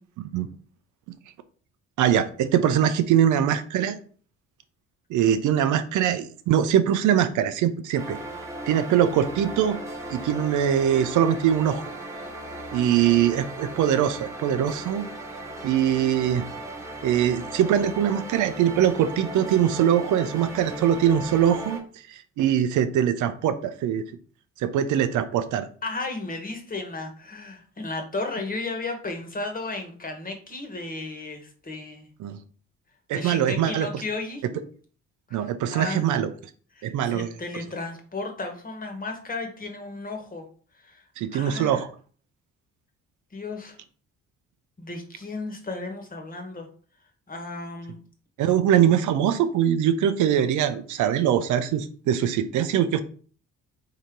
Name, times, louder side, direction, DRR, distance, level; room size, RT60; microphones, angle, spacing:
voice 1, 2.0-4.0 5.1-8.2 8.7-9.8 10.1-11.8 12.7-15.0 15.6-16.5 17.0-21.8 22.1-24.0 24.6-25.7 32.2-32.4 33.1-33.9 35.3-36.3 36.8-37.3 41.2-41.9 48.4-53.0, right 10 dB, 80° right, 11 dB, 0.5 m, -22 dB
sound 1, 8.0-21.8, right 1 dB, 10° right, 1.1 m, -37 dB
voice 2, 25.8-32.1 33.1-34.6 35.3-36.2 36.7-40.4 40.7-41.0 41.3-41.8 43.3-43.8 44.8-46.7 47.3-48.0, left 3 dB, 30° left, 4 dB, 1.3 m, -34 dB
3.8 x 2.9 x 4.6 m, 0.43 s
cardioid pair, 90°, 30 cm